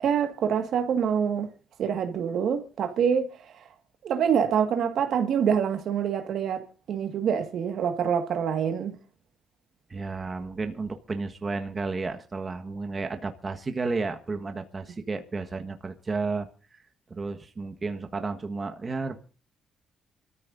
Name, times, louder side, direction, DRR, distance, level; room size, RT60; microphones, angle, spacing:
voice 1, 0.0-1.5 1.8-3.6 4.0-9.0, right 7 dB, 70° right, 1.9 m, -26 dB
voice 2, 9.9-16.8 17.1-19.2, right 3 dB, 30° right, 1.5 m, -32 dB
27.0 x 14.0 x 2.7 m
cardioid pair, 90°, 0 cm